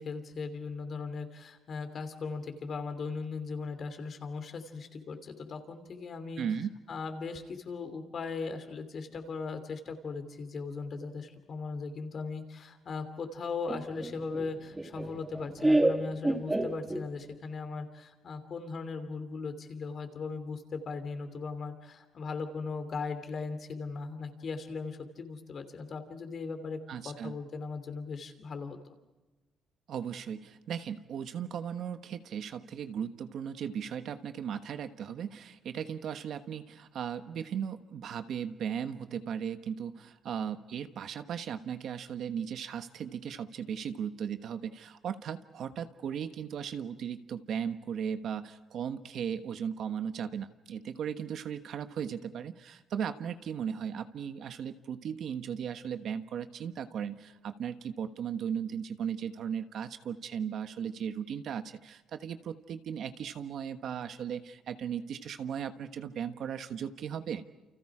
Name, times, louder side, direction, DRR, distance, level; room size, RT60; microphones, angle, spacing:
voice 1, 0.0-6.4 6.9-26.8 27.0-28.8, left 4 dB, 40° left, 8 dB, 3.0 m, -38 dB
voice 2, 6.4-6.7 26.9-27.3 29.9-67.4, right 8 dB, 55° right, 9 dB, 1.3 m, -37 dB
Laughter, 13.7-17.3, right 1 dB, 10° right, 1.6 m, -29 dB
30.0 x 29.5 x 5.0 m, 1.1 s
cardioid pair, 165°, 0 cm